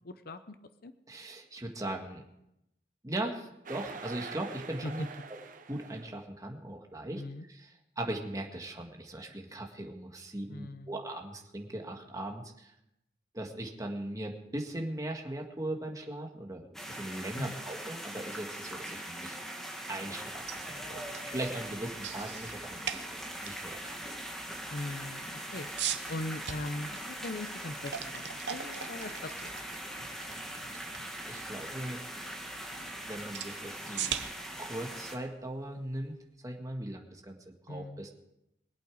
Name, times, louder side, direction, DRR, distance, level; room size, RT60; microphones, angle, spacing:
voice 1, 0.0-0.6 0.8-0.9 4.8-4.9 7.2-7.4 10.5-11.0 17.4-17.6 24.7-25.7 26.1-29.5 37.7-38.0, left 2 dB, 60° left, 10 dB, 0.8 m, -40 dB
voice 2, 1.1-2.2 3.0-5.4 5.7-12.7 13.3-19.4 19.9-24.4 30.7-30.9 31.3-32.0 33.0-34.2 34.5-36.2 36.4-38.1, right 1 dB, 20° right, 3 dB, 1.8 m, -39 dB
sound 1, 3.7-6.2, right 4 dB, 50° right, 1.2 m, -45 dB
sound 2, 16.7-35.2, right 1 dB, ahead, 2.1 m, -41 dB
sound 3, 20.3-36.2, right 9 dB, 80° right, 0.9 m, -43 dB
23.0 x 8.6 x 4.9 m, 0.83 s
head